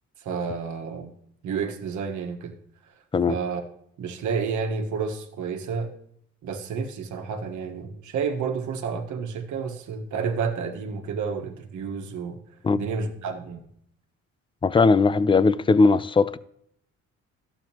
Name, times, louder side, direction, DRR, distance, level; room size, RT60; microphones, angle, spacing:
voice 1, 0.2-1.1 1.4-2.6 2.8-3.0 3.3-3.6 4.0-5.9 6.4-12.4 12.7-13.6, right 5 dB, 75° right, 1.4 m, -30 dB
voice 2, 14.6-16.4, left 4 dB, 15° left, 0.4 m, -19 dB
12.0 x 7.9 x 2.9 m
cardioid pair, 90°, 30 cm